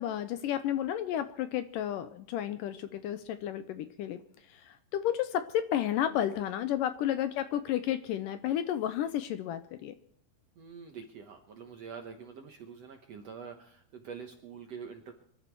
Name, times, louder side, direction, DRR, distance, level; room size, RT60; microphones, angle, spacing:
voice 1, 0.0-4.2 4.5-10.0, left 11 dB, 75° left, 11 dB, 2.2 m, -32 dB
voice 2, 10.6-15.1, right 6 dB, 65° right, 4 dB, 1.7 m, -45 dB
24.5 x 12.0 x 4.7 m, 0.68 s
omnidirectional pair, 4.3 m